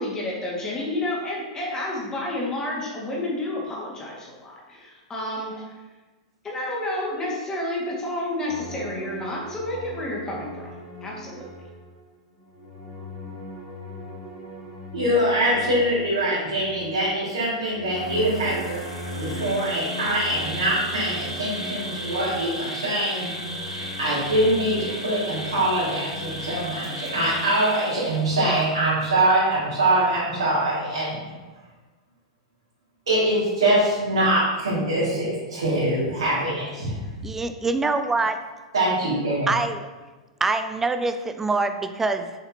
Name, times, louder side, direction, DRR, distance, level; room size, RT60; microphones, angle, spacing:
voice 1, 0.0-5.8 6.4-10.7 11.0-11.5, left 1 dB, 20° left, -3 dB, 1.9 m, -30 dB
sound 1, 8.5-12.0 12.4-27.4, left 1 dB, 75° left, 1.9 m, -39 dB
voice 2, 14.9-18.8 19.1-23.3 23.6-31.3 33.1-36.9 38.7-39.5, right 1 dB, 70° right, -10 dB, 2.1 m, -23 dB
Insect, 17.8-28.6, equal, 90° left, 1.4 m, -35 dB
voice 3, 37.2-38.4 39.5-39.8 40.4-42.3, right 3 dB, 10° right, 9 dB, 0.4 m, -24 dB
6.7 x 5.6 x 2.9 m, 1.2 s
figure-of-eight pair, 95°, 3 cm